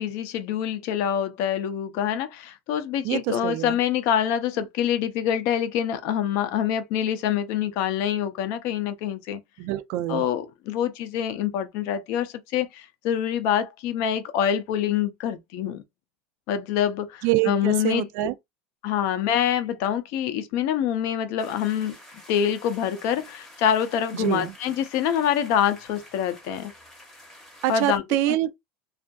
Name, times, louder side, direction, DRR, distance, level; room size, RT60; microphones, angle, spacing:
voice 1, 0.0-9.4 10.1-15.8 16.5-18.1 18.8-21.9 22.3-26.7 27.7-28.0 28.3-28.4, left 9 dB, 50° left, 0.5 m, -25 dB
voice 2, 3.0-3.8 9.6-10.2 17.2-18.3 24.1-24.5 27.6-28.5, right 15 dB, 50° right, 0.3 m, -25 dB
sound 1, 21.4-28.0, left 1 dB, 5° left, 0.8 m, -49 dB
2.6 x 2.4 x 2.3 m
supercardioid pair, 165°, 6 cm